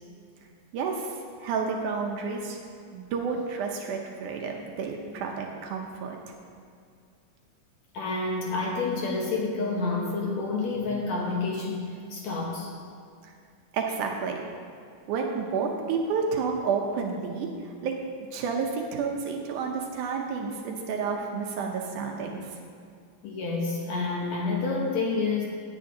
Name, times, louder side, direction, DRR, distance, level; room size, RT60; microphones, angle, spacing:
voice 1, 0.7-2.6 2.9-6.2 13.2-13.3 13.7-14.4 15.1-17.9 18.3-22.5, right 5 dB, 75° right, 1 dB, 2.2 m, -30 dB
voice 2, 7.9-12.7 20.1-20.3 21.6-21.8 23.2-25.5, left 3 dB, 65° left, -2 dB, 2.1 m, -29 dB
17.0 x 8.9 x 2.8 m, 2.3 s
omnidirectional pair, 3.9 m